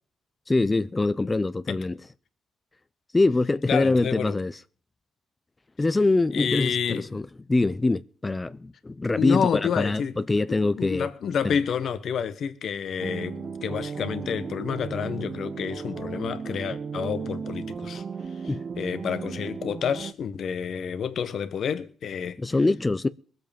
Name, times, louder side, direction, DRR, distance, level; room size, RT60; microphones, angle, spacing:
voice 1, 0.5-2.0 3.1-4.6 5.8-7.2 7.5-11.1 18.5-18.6 22.4-23.1, left 2 dB, 20° left, 0.6 m, -24 dB
voice 2, 3.7-4.4 6.3-7.1 9.1-10.2 10.5-18.0 18.8-22.4, left 7 dB, 60° left, 1.4 m, -29 dB
sound 1, 13.0-20.1, right 6 dB, 40° right, 0.7 m, -35 dB
21.0 x 7.9 x 5.3 m
cardioid pair, 90°, 0 cm